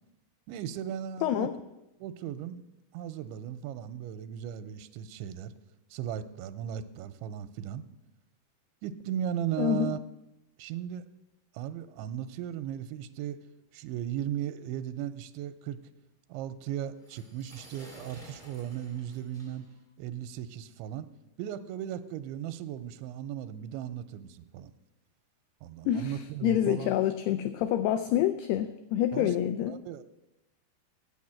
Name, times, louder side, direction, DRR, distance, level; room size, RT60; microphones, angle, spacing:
voice 1, 0.5-1.5 2.0-2.6 2.9-5.5 5.9-7.8 8.8-10.0 10.6-11.0 11.5-13.4 13.7-15.8 16.3-19.7 20.0-21.1 21.4-24.7 25.6-27.0 29.1-30.0, right 10 dB, 85° right, 11 dB, 2.9 m, -36 dB
voice 2, 1.2-1.5 9.6-9.9 25.9-26.2 26.4-29.8, left 11 dB, 90° left, 9 dB, 2.2 m, -27 dB
sound 1, 17.0-19.9, equal, 40° left, 0.4 m, -53 dB
9.5 x 8.0 x 8.6 m, 0.93 s
omnidirectional pair, 5.2 m